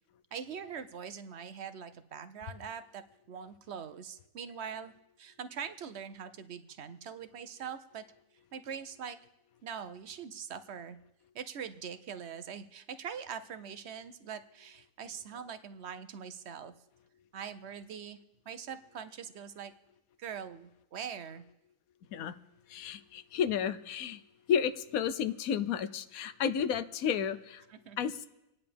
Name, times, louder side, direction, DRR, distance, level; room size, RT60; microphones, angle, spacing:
voice 1, 0.3-3.0 3.3-4.9 5.2-8.0 8.5-9.2 9.6-11.0 11.3-16.7 17.3-18.2 18.5-19.7 20.2-21.4 27.7-28.0, right 7 dB, 55° right, 11 dB, 0.9 m, -43 dB
voice 2, 22.7-24.2 24.5-27.6 28.0-28.3, left 8 dB, 80° left, 12 dB, 1.1 m, -32 dB
27.5 x 9.8 x 3.4 m, 0.90 s
omnidirectional pair, 1.5 m